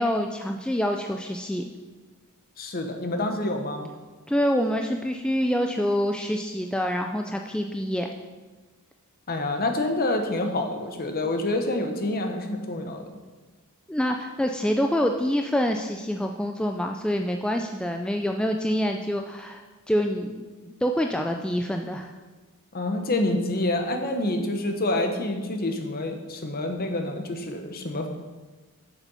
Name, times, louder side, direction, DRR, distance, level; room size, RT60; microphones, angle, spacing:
voice 1, 0.0-1.6 4.3-8.1 13.9-19.6 19.9-22.1, equal, 5° left, 3 dB, 0.3 m, -26 dB
voice 2, 2.6-3.9 9.3-13.0 22.7-28.1, left 2 dB, 45° left, 5 dB, 1.0 m, -27 dB
8.4 x 7.1 x 5.5 m, 1.3 s
head